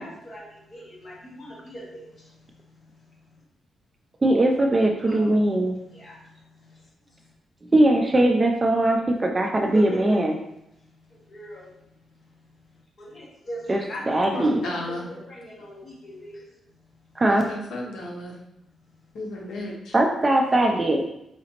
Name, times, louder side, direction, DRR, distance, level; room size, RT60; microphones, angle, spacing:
voice 1, 0.0-3.4 5.0-7.3 9.7-10.2 10.8-11.8 12.1-16.5 17.1-17.2, equal, 30° left, -5 dB, 1.4 m, -42 dB
voice 2, 4.2-5.8 7.7-10.4 13.7-13.8 14.1-14.6 17.2-17.5 19.9-21.0, right 1 dB, 15° right, 2 dB, 0.3 m, -20 dB
voice 3, 14.3-15.1 17.2-18.4 19.1-19.9, left 1 dB, 75° left, -1 dB, 0.9 m, -33 dB
4.9 x 2.9 x 2.9 m, 0.80 s
wide cardioid pair, 175°, 0 cm